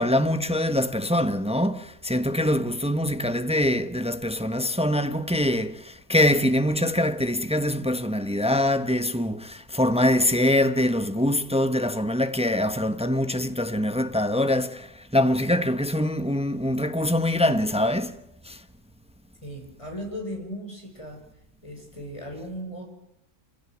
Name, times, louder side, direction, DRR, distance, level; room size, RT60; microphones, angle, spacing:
voice 1, 0.0-18.2 18.5-18.6, left 1 dB, 5° right, 0.9 m, -24 dB
voice 2, 19.4-21.2 21.6-22.8, equal, 20° left, 6.3 m, -37 dB
27.5 x 16.5 x 9.3 m
omnidirectional pair, 1.6 m